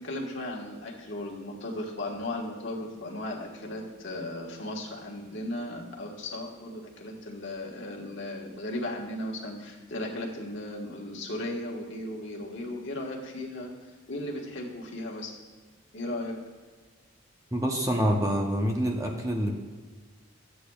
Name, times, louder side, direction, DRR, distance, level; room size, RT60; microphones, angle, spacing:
voice 1, 0.0-13.7 14.1-15.3 15.9-16.3, left 1 dB, 55° left, -1 dB, 1.4 m, -36 dB
voice 2, 17.5-19.6, equal, 15° right, 1 dB, 0.7 m, -26 dB
13.0 x 8.4 x 2.3 m, 1.5 s
head